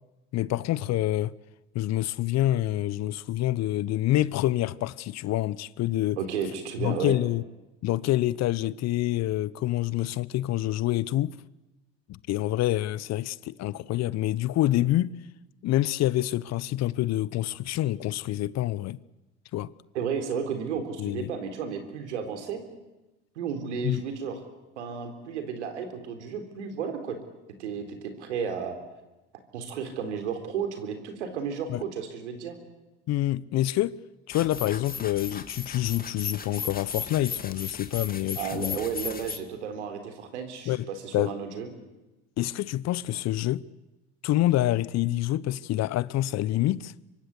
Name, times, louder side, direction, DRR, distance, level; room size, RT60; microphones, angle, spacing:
voice 1, 0.3-1.3 1.7-6.2 6.8-7.4 7.8-11.4 12.1-15.1 15.6-19.0 19.5-19.7 21.0-21.3 23.8-24.0 31.7-31.8 33.1-34.0 34.3-38.8 40.7-40.9 41.1-41.3 42.4-43.6 44.2-46.9, left 15 dB, 50° left, 0.9 m, -27 dB
voice 2, 6.2-7.2 19.9-22.6 23.4-24.4 24.8-27.2 27.6-28.8 29.5-32.6 38.4-41.7, right 6 dB, 80° right, 3.8 m, -33 dB
sound 1, 34.3-39.4, left 5 dB, 25° left, 2.5 m, -36 dB
25.0 x 23.5 x 8.3 m
hypercardioid pair, 70°, 34 cm